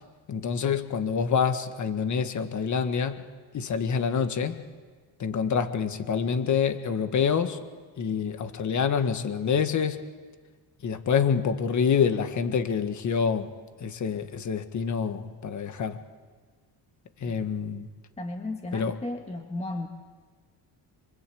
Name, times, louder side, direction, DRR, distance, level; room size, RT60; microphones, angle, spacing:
voice 1, 0.3-3.3 3.5-4.6 5.2-7.6 8.0-10.1 10.8-13.5 13.8-16.0 17.2-17.9 18.7-19.0, left 6 dB, 40° left, 9 dB, 1.7 m, -27 dB
voice 2, 18.2-19.9, left 2 dB, 15° left, 3 dB, 1.6 m, -35 dB
26.5 x 25.5 x 8.6 m, 1.5 s
cardioid pair, 145°, 44 cm